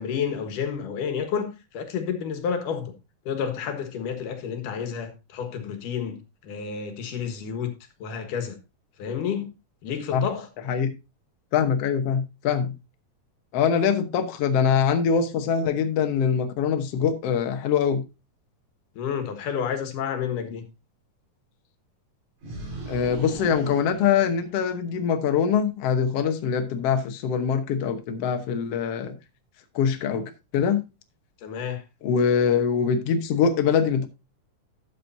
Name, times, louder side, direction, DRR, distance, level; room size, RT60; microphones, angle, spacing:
voice 1, 0.0-2.9 3.3-7.7 8.0-8.6 9.0-9.5 9.8-10.5 19.0-20.7 31.4-31.8, left 7 dB, 80° left, 2.9 m, -30 dB
voice 2, 11.5-12.7 13.5-18.0 22.9-29.2 29.8-30.8 32.0-34.1, left 7 dB, 60° left, 1.8 m, -23 dB
sound 1, 22.4-24.9, right 2 dB, 65° right, 5.0 m, -38 dB
12.5 x 7.9 x 2.7 m
omnidirectional pair, 3.7 m